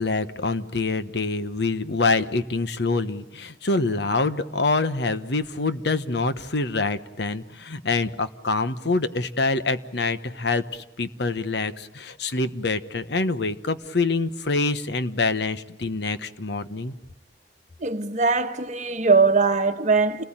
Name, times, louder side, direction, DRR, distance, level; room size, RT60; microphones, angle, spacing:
voice 1, 0.0-16.9, left 3 dB, 65° left, 1.2 m, -25 dB
voice 2, 17.8-20.2, right 4 dB, 45° right, 1.4 m, -21 dB
29.0 x 19.5 x 8.9 m
head